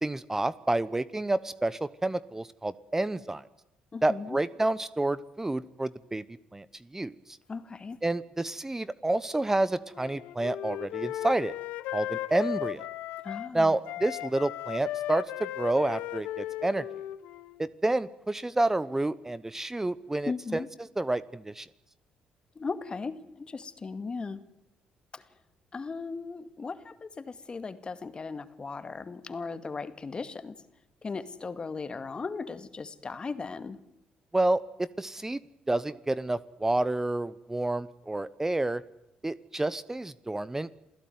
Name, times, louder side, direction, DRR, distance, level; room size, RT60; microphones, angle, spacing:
voice 1, 0.0-3.4 4.0-6.2 6.5-6.6 6.9-7.4 8.0-11.5 11.9-12.9 13.5-16.9 17.6-21.7 34.3-35.4 35.7-38.8 39.2-40.8, right 2 dB, 15° right, 16 dB, 0.9 m, -29 dB
voice 2, 3.9-4.4 7.5-8.0 13.2-13.8 20.3-20.7 22.6-24.4 25.1-25.2 25.7-30.5 31.0-33.8, left 4 dB, 35° left, 11 dB, 2.2 m, -37 dB
Wind instrument woodwind instrument, 9.9-13.5 13.8-17.6, left 14 dB, 80° left, 1.1 m, -36 dB
28.0 x 16.5 x 9.5 m, 0.87 s
supercardioid pair, 60°, 3 cm